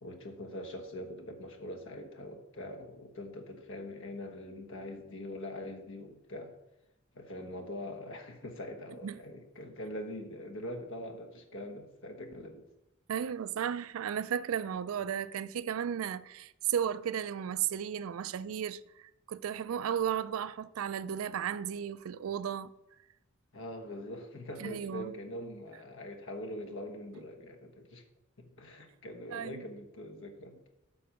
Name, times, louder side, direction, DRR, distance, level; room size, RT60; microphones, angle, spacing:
voice 1, 0.0-6.5 7.1-12.6 13.1-13.2 23.5-28.0 28.4-30.7, left 1 dB, 65° left, 1.2 m, -43 dB
voice 2, 13.1-18.8 19.3-22.7 24.6-25.1 29.3-29.6, right 8 dB, 80° right, 0.4 m, -34 dB
7.7 x 5.7 x 5.1 m
head